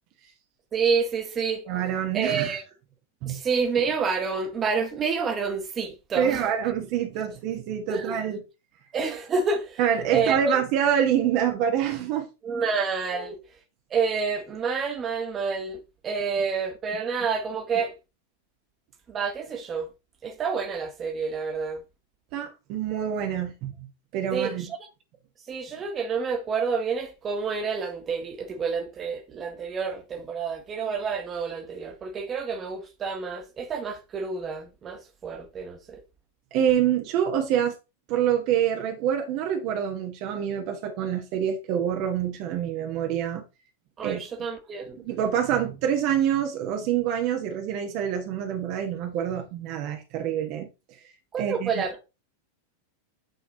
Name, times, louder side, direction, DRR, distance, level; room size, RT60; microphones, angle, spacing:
voice 1, 0.7-1.6 2.1-2.6 3.3-6.5 7.9-8.2 8.9-9.8 10.1-10.6 12.4-13.3 13.9-17.9 19.1-19.9 20.2-21.8 24.3-24.7 25.5-36.0 44.0-45.0 51.3-52.0, right 5 dB, 25° right, 1.6 m, -28 dB
voice 2, 1.7-2.6 3.2-3.4 6.1-8.4 9.8-12.3 13.1-13.4 22.3-23.7 24.1-24.7 36.5-37.7 38.1-43.4 44.0-44.2 45.0-50.7 51.4-51.8, right 9 dB, 45° right, 1.3 m, -26 dB
9.2 x 3.9 x 4.0 m
figure-of-eight pair, 90°, 0 cm